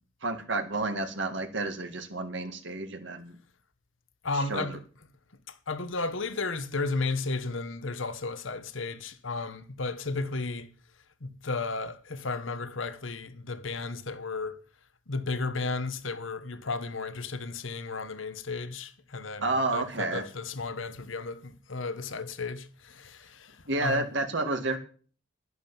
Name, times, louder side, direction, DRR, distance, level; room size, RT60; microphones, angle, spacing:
voice 1, 0.2-3.4 4.5-4.8 19.4-20.2 23.7-24.8, right 2 dB, 65° right, 1.9 m, -30 dB
voice 2, 4.2-4.8 5.5-10.7 11.2-14.6 15.1-24.1, left 3 dB, 75° left, 1.2 m, -34 dB
11.5 x 11.0 x 7.3 m
head